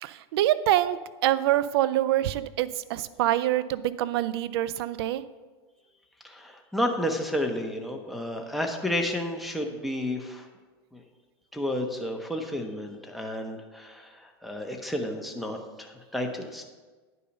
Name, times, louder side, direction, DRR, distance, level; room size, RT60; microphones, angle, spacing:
voice 1, 0.0-5.2, right 13 dB, 70° right, 15 dB, 0.5 m, -25 dB
voice 2, 6.2-10.5 10.9-11.0 11.5-16.6, left 1 dB, ahead, 1 dB, 1.1 m, -31 dB
10.0 x 5.5 x 5.4 m, 1.3 s
hypercardioid pair, 105°, 14 cm